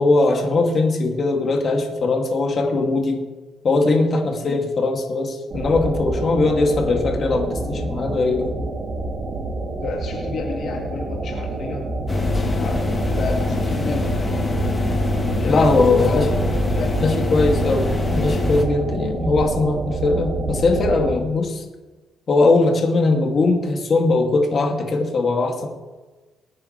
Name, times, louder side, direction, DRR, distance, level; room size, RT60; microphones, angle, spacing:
voice 1, 0.0-3.2 3.6-8.5 15.5-16.3 17.0-21.6 22.3-25.7, left 3 dB, 50° left, 1 dB, 2.4 m, -20 dB
sound 1, 5.5-21.1, right 2 dB, 50° right, 2.9 m, -28 dB
voice 2, 9.8-11.9 12.4-14.3 15.2-15.7 15.9-16.3 16.7-17.2 18.9-19.0, left 4 dB, 65° left, -1 dB, 2.1 m, -31 dB
sound 2, 12.1-18.6, left 2 dB, 25° left, 2.1 m, -23 dB
23.5 x 9.3 x 3.3 m, 1.3 s
cardioid pair, 90°, 0 cm